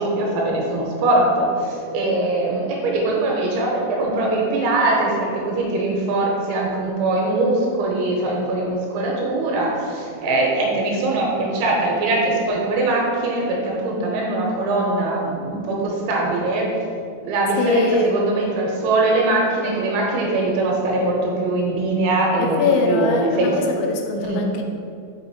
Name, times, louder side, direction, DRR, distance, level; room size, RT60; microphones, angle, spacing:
voice 1, 0.0-16.7 17.2-22.6 22.9-23.6 24.2-24.4, right 2 dB, 85° right, -2 dB, 3.3 m, -22 dB
voice 2, 17.6-18.1 22.4-24.6, left 4 dB, 85° left, 2 dB, 2.9 m, -21 dB
6.2 x 5.9 x 3.0 m, 2.3 s
omnidirectional pair, 5.4 m